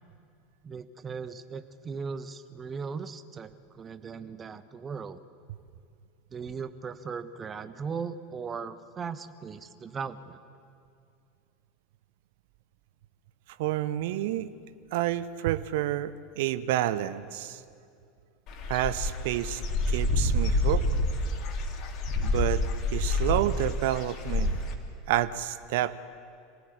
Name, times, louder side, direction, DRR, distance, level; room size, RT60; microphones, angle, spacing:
voice 1, 0.6-5.2 6.3-10.4, right 5 dB, 25° right, 11 dB, 1.3 m, -38 dB
voice 2, 13.6-14.5 14.9-17.6 18.7-19.6 19.9-20.8 22.2-22.6 22.9-24.6 25.1-26.0, right 13 dB, 60° right, 14 dB, 0.9 m, -29 dB
Dog / Bird, 18.5-24.7, left 1 dB, 40° left, 3.1 m, -28 dB
26.5 x 17.0 x 8.5 m, 2.3 s
figure-of-eight pair, 80°, 0 cm